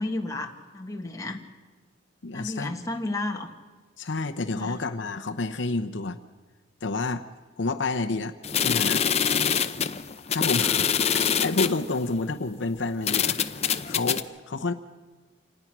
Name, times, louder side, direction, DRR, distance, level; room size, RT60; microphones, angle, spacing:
voice 1, 0.0-1.4 2.3-3.5 4.5-4.8, left 2 dB, 15° left, 2 dB, 1.6 m, -32 dB
voice 2, 2.2-2.7 4.0-6.2 6.8-7.2 7.6-8.3 8.6-9.6 10.3-13.4 13.9-14.7, left 3 dB, 65° left, 7 dB, 0.8 m, -29 dB
sound 1, 8.4-11.8 12.5-12.6 13.1-14.2, left 8 dB, 30° left, 0.7 m, -25 dB
27.0 x 19.0 x 6.1 m, 1.3 s
head